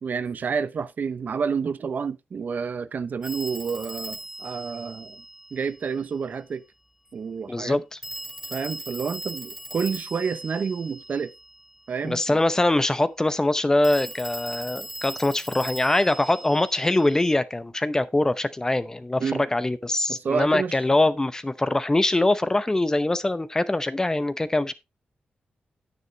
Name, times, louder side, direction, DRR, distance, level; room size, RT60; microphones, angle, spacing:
voice 1, 0.0-5.2 5.5-6.6 7.1-7.8 8.5-11.3 11.9-12.4 19.2-19.4 20.1-20.8, right 6 dB, 55° right, 0.7 m, -29 dB
Telephone, 3.2-5.9 8.0-11.7 13.8-17.3, right 1 dB, 5° right, 3.8 m, -39 dB
voice 2, 7.5-8.0 12.0-24.7, left 2 dB, 15° left, 0.8 m, -23 dB
9.6 x 9.4 x 3.2 m
wide cardioid pair, 115°, 4 cm